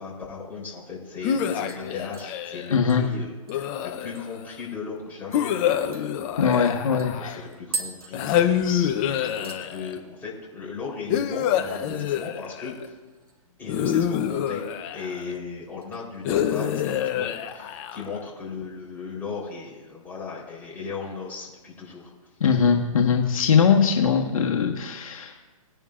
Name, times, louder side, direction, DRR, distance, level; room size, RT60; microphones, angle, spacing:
voice 1, 0.0-6.2 7.1-12.9 13.6-14.7 14.9-22.1, left 5 dB, 10° left, -6 dB, 3.8 m, -37 dB
sound 1, 1.2-2.8 3.5-4.4 5.3-7.5 8.1-10.0 11.1-12.9 13.7-15.3 16.3-18.2, left 9 dB, 25° left, 0.7 m, -26 dB
sound 2, 1.7-4.5 4.9-5.0 5.3-5.5 5.9-8.9 9.2-9.7 10.0-10.4 10.7-10.8 12.9-13.5 13.8-14.6 15.0-15.3 15.8-16.7 17.1-17.2, right 3 dB, 85° right, 1.8 m, -41 dB
voice 2, 2.7-3.1 6.4-7.4 8.2-8.3 8.6-8.9 22.4-25.4, left 6 dB, 70° left, 1 dB, 1.5 m, -21 dB
19.5 x 10.5 x 2.5 m, 1.2 s
hypercardioid pair, 145°, 18 cm